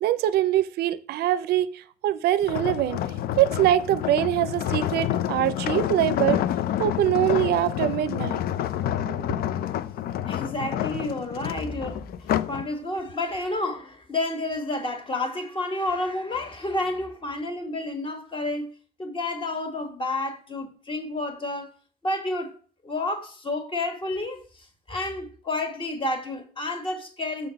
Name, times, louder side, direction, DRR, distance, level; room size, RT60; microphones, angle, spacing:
voice 1, 0.0-3.0 3.4-6.4 6.8-8.4 9.0-9.4, right 12 dB, 75° right, 0.5 m, -23 dB
sound 1, 2.4-12.6 13.1-13.4, left 11 dB, 65° left, 0.5 m, -28 dB
voice 2, 10.3-12.0 12.5-18.7 19.0-21.7 22.0-22.5 22.8-27.5, left 2 dB, 30° left, 1.7 m, -30 dB
6.8 x 4.0 x 6.5 m
cardioid pair, 110°, 17 cm